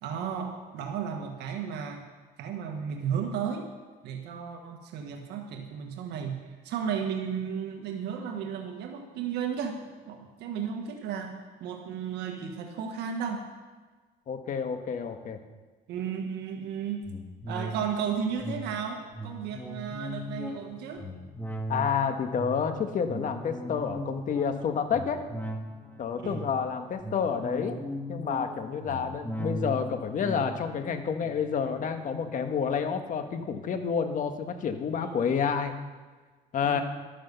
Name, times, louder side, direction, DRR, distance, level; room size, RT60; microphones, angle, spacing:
voice 1, 0.0-2.0 2.4-3.7 4.0-13.5 15.9-17.1 17.5-21.1 26.2-26.4 35.0-35.3 36.6-36.8, right 7 dB, 80° right, 4 dB, 1.5 m, -34 dB
voice 2, 14.3-15.4 21.7-25.2 26.0-27.8 28.1-35.7 36.5-36.8, left 6 dB, 50° left, 6 dB, 1.6 m, -29 dB
sound 1, 17.0-32.8 33.2-33.3, equal, 10° left, 1.9 m, -39 dB
12.5 x 10.0 x 6.9 m, 1.4 s
cardioid pair, 110°, 17 cm